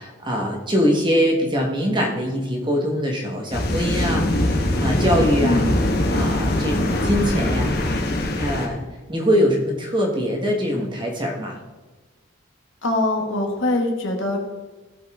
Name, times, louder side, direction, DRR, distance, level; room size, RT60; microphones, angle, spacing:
voice 1, 0.0-5.6 6.1-7.8 8.4-8.8 9.1-11.6, equal, 25° right, 1 dB, 1.5 m, -23 dB
sound 1, 3.5-8.7, left 1 dB, 50° left, 1.3 m, -22 dB
voice 2, 5.4-5.8 12.8-14.4, left 1 dB, 70° left, 2 dB, 1.9 m, -22 dB
16.5 x 5.5 x 3.6 m, 1.3 s
head